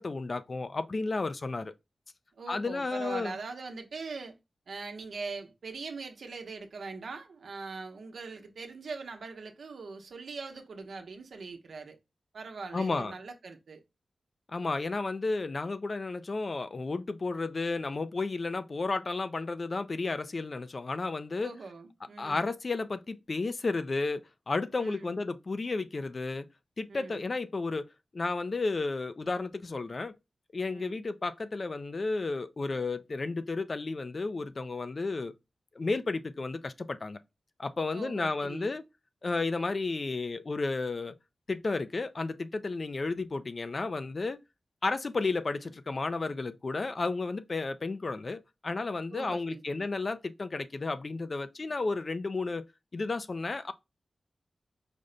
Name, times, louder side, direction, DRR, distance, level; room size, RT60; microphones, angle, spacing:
voice 1, 0.0-1.7 2.5-3.4 12.7-13.1 14.5-21.5 22.2-26.4 26.8-30.2 30.5-35.3 35.8-37.2 37.6-38.8 39.2-41.2 41.5-44.4 44.8-52.6 52.9-53.7, left 3 dB, 50° left, 0.4 m, -32 dB
voice 2, 2.4-4.4 4.7-12.0 12.3-13.8 21.4-22.5 24.7-25.2 26.9-27.2 30.7-31.0 37.9-38.7 49.1-49.9, right 4 dB, 85° right, 0.8 m, -42 dB
5.0 x 2.1 x 3.8 m
wide cardioid pair, 85°, 0 cm